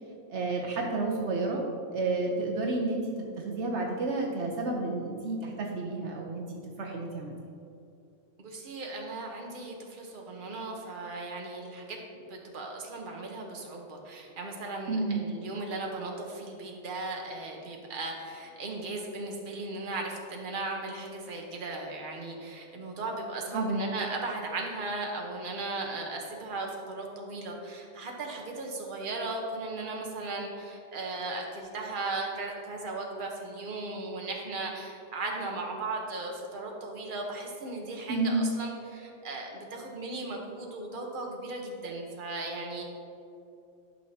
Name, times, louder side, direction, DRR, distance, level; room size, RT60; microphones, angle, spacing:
voice 1, 0.3-1.6 1.9-3.1 3.4-6.4 6.8-7.3 14.9-15.3 23.5-23.9 38.1-38.5, right 3 dB, 70° right, 0 dB, 1.1 m, -30 dB
voice 2, 8.4-42.8, right 2 dB, 45° right, 1 dB, 1.1 m, -37 dB
11.5 x 5.9 x 2.8 m, 2.6 s
omnidirectional pair, 1.3 m